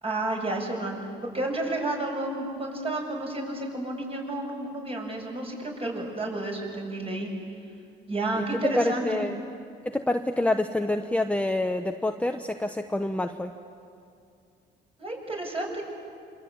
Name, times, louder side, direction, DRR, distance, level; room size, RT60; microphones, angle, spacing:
voice 1, 0.0-7.3 8.1-9.3 15.0-15.8, right 2 dB, 30° right, 0 dB, 7.6 m, -31 dB
voice 2, 8.8-9.4 9.8-13.5, left 1 dB, 5° left, 5 dB, 1.1 m, -27 dB
26.5 x 25.5 x 8.8 m, 2.4 s
cardioid pair, 90°, 20 cm